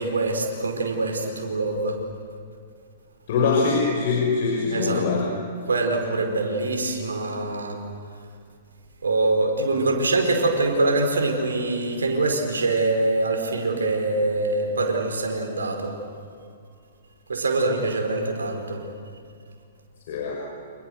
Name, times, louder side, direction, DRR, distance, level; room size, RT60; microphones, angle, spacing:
voice 1, 0.0-2.0 4.7-5.1 5.7-7.8 9.0-16.0 17.3-18.8, right 2 dB, 75° right, 3 dB, 5.3 m, -24 dB
voice 2, 3.3-5.2 20.1-20.3, left 4 dB, 55° left, -1 dB, 6.1 m, -23 dB
29.5 x 28.0 x 6.7 m, 2.3 s
figure-of-eight pair, 115°, 0 cm